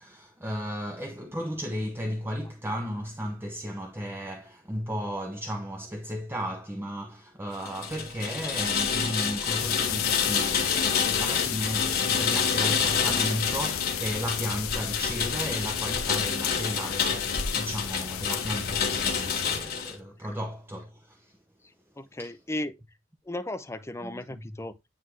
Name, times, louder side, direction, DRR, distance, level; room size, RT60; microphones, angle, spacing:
voice 1, 0.0-21.4 22.2-22.3 24.0-24.5, equal, 10° right, 0.8 m, -34 dB
Rain, 7.6-19.9, left 6 dB, 50° left, 1.8 m, -28 dB
sound 1, 9.6-19.6, left 12 dB, 85° left, 0.5 m, -34 dB
voice 2, 22.0-22.8 23.3-24.7, left 1 dB, 15° left, 0.5 m, -35 dB
9.4 x 3.6 x 3.2 m
head